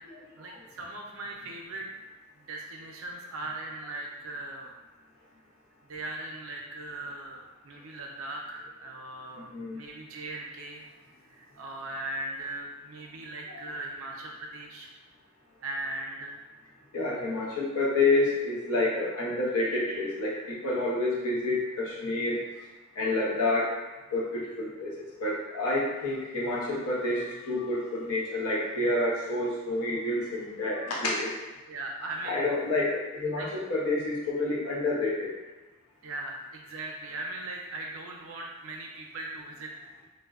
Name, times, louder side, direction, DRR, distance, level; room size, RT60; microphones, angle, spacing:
voice 1, 0.3-1.9 2.4-4.8 5.9-10.8 11.3-14.9 15.6-16.4 19.6-20.0 31.7-32.4 33.3-33.5 36.0-39.7, right 2 dB, 70° right, 0 dB, 0.4 m, -39 dB
voice 2, 16.9-22.4 23.0-23.7 24.1-31.3 32.2-35.3, left 2 dB, 85° left, -5 dB, 0.7 m, -28 dB
2.5 x 2.1 x 2.3 m, 1.2 s
head